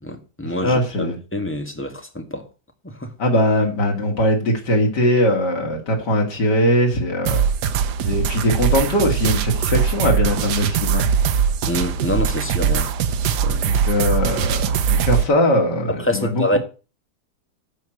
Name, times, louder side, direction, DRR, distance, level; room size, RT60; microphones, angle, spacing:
voice 1, 0.0-2.5 2.8-3.1 11.7-12.9 13.4-13.8 15.9-16.6, left 1 dB, 10° left, 1.6 m, -26 dB
voice 2, 0.6-1.2 3.2-7.4 8.0-11.1 13.6-14.6 14.9-16.6, equal, 90° left, 2.9 m, -20 dB
sound 1, 7.3-15.2, right 7 dB, 80° right, 1.4 m, -21 dB
11.5 x 4.6 x 7.9 m
omnidirectional pair, 1.8 m